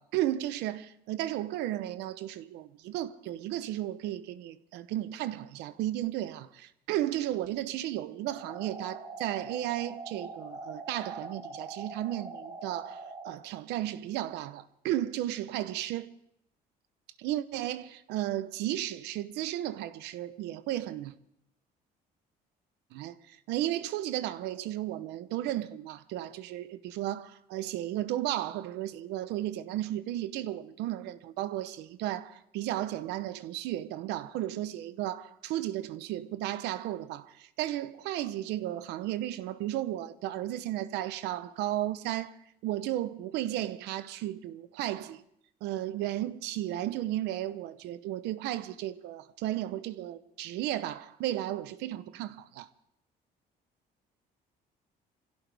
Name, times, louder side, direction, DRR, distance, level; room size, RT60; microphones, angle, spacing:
voice 1, 0.0-16.1 17.2-21.1 22.9-42.4 42.6-45.2 45.6-52.7, right 13 dB, 90° right, 0.8 m, -34 dB
sound 1, 8.3-13.3, right 3 dB, 25° right, 2.4 m, -43 dB
24.0 x 16.0 x 3.5 m
cardioid pair, 110°, 17 cm